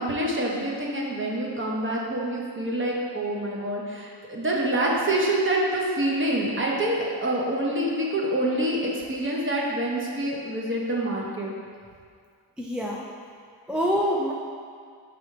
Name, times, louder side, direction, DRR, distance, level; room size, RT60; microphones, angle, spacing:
voice 1, 0.0-11.5, right 1 dB, 25° right, -3 dB, 1.0 m, -26 dB
voice 2, 12.6-13.1 13.7-14.3, equal, ahead, -3 dB, 0.4 m, -25 dB
4.8 x 4.0 x 5.8 m, 2.1 s
wide cardioid pair, 115°, 46 cm